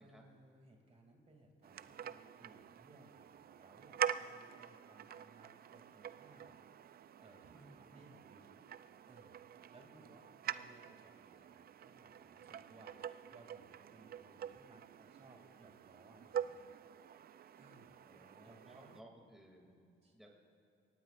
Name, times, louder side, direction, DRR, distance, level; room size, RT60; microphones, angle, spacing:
voice 1, 0.0-6.6 7.2-8.6 9.1-12.9 13.3-16.8 17.6-19.0 20.0-20.3, right 2 dB, 30° right, 2 dB, 2.7 m, -63 dB
sound 1, 1.6-19.0, right 9 dB, 50° right, 0.4 m, -46 dB
voice 2, 7.5-8.2 16.2-16.5 18.0-20.3, right 1 dB, ahead, 0 dB, 2.6 m, -60 dB
23.0 x 18.5 x 2.5 m, 2.6 s
cardioid pair, 90°, 20 cm